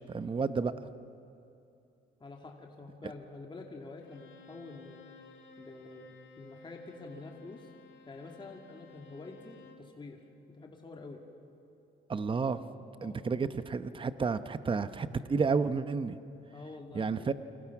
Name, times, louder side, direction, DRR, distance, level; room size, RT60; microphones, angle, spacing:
voice 1, 0.1-0.7 12.1-12.6 13.0-16.2 16.9-17.3, right 5 dB, 25° right, 12 dB, 0.9 m, -31 dB
voice 2, 2.2-5.0 5.6-6.1 6.4-7.7 8.1-10.2 10.5-11.2 13.0-13.2 16.5-17.3, left 3 dB, 25° left, 1 dB, 2.4 m, -47 dB
Bowed string instrument, 4.0-9.9, left 4 dB, 70° left, 2.8 m, -55 dB
28.5 x 26.0 x 6.0 m, 2.7 s
cardioid pair, 115°, 21 cm